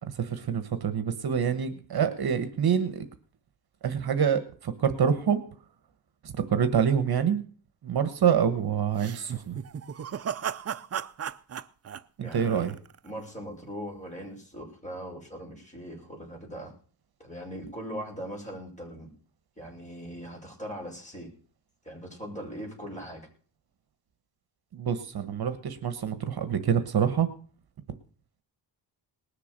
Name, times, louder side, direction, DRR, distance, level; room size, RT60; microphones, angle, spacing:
voice 1, 0.0-3.1 3.8-5.4 6.2-7.4 7.8-9.6 12.2-12.7 24.7-27.3, right 7 dB, 55° right, 10 dB, 1.3 m, -26 dB
sound 1, 9.0-13.1, right 8 dB, 35° right, 0.5 m, -36 dB
voice 2, 12.2-12.7 13.0-16.7 17.2-19.1 19.6-21.3 21.8-23.3, equal, 15° left, -1 dB, 6.2 m, -40 dB
19.5 x 6.8 x 6.7 m, 0.42 s
wide cardioid pair, 125°, 43 cm